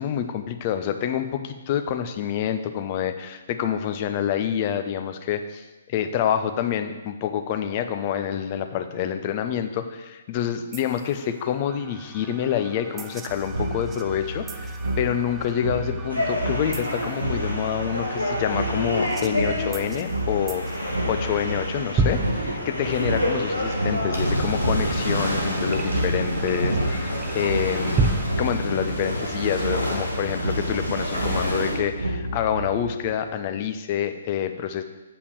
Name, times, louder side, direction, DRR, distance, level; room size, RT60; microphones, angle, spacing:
voice 1, 0.0-28.1 28.4-34.8, left 9 dB, 30° left, 8 dB, 0.7 m, -27 dB
sound 1, 10.7-28.2, right 3 dB, 10° right, 0.5 m, -34 dB
sound 2, 13.3-33.1, right 1 dB, 75° right, 1.0 m, -31 dB
sound 3, 16.1-31.8, equal, 85° left, 2.2 m, -28 dB
8.2 x 5.6 x 6.8 m, 1.1 s
figure-of-eight pair, 130°, 0 cm